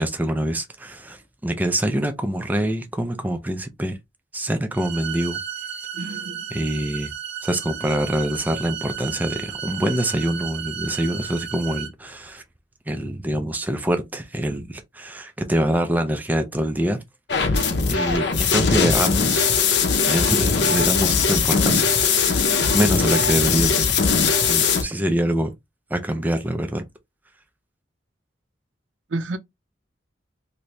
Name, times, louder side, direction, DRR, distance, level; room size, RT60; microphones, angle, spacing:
voice 1, 0.0-4.0 4.3-5.4 6.0-6.1 6.5-7.1 7.4-12.4 12.9-17.0 17.5-19.4 20.0-23.9 24.5-25.5 25.9-26.9, right 1 dB, 10° right, 0.4 m, -25 dB
sound 1, 4.7-11.9, right 8 dB, 60° right, 0.8 m, -33 dB
voice 2, 5.9-6.4 29.1-29.4, right 2 dB, 90° right, 0.6 m, -30 dB
sound 2, 17.3-24.8, left 5 dB, 65° left, 0.6 m, -20 dB
2.9 x 2.6 x 3.2 m
head